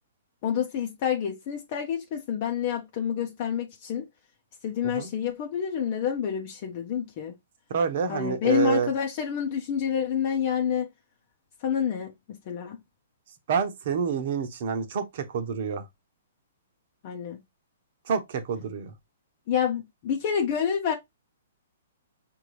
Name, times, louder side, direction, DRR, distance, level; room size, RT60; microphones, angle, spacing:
voice 1, 0.4-4.1 4.6-7.3 8.1-10.9 11.6-12.8 17.0-17.4 19.5-20.9, left 8 dB, 45° left, 0.8 m, -28 dB
voice 2, 7.7-8.9 13.5-15.9 18.1-18.9, right 6 dB, 55° right, 1.0 m, -28 dB
5.3 x 2.7 x 3.2 m
hypercardioid pair, 125°, 0 cm